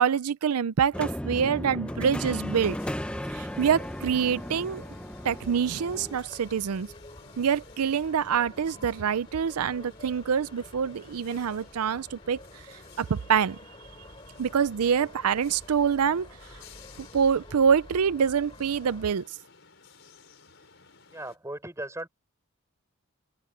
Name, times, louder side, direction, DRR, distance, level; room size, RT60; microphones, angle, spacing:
voice 1, 0.0-2.8 3.3-4.8 5.2-6.9 7.4-12.4 13.0-13.6 14.4-16.3 17.1-19.3, right 7 dB, 90° right, 0.5 m, -25 dB
sound 1, 0.9-6.2, equal, 5° left, 0.7 m, -35 dB
sound 2, 1.8-19.1, left 1 dB, 25° left, 4.0 m, -49 dB
sound 3, 2.2-21.4, left 5 dB, 55° left, 5.4 m, -55 dB
voice 2, 21.1-22.1, right 1 dB, 15° right, 6.8 m, -37 dB
open air
head